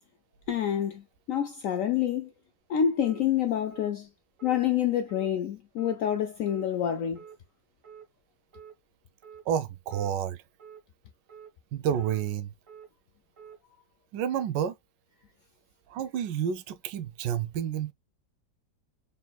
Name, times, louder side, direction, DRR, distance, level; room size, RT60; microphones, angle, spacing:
voice 1, 0.5-2.3 2.7-4.1 4.4-7.2, left 9 dB, 75° left, 0.7 m, -27 dB
sound 1, 3.0-3.2 3.7-3.9 4.4-4.6 5.1-5.3 5.8-6.0 6.5-6.7 7.2-7.4 7.8-8.1 8.5-8.7 9.2-9.4 9.9-10.1 10.6-10.8 11.3-11.5 12.0-12.2 12.7-12.9 13.4-13.6, right 7 dB, 50° right, 1.5 m, -48 dB
voice 2, 9.5-10.4 11.7-12.5 14.1-14.7 15.9-17.9, right 9 dB, 85° right, 1.3 m, -30 dB
4.0 x 4.0 x 2.3 m
omnidirectional pair, 1.9 m